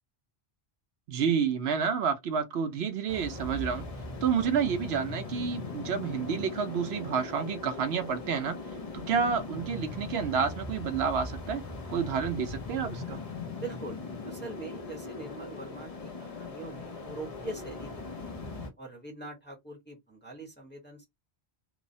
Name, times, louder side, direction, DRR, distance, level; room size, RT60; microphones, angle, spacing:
voice 1, 1.1-3.9 4.2-8.6 8.9-11.6 11.9-13.2, right 6 dB, 75° right, 0.8 m, -29 dB
sound 1, 3.1-18.7, left 3 dB, 40° left, 0.7 m, -40 dB
voice 2, 13.6-18.4 18.8-21.1, right 2 dB, 10° left, 0.8 m, -43 dB
3.0 x 2.0 x 2.6 m
omnidirectional pair, 1.1 m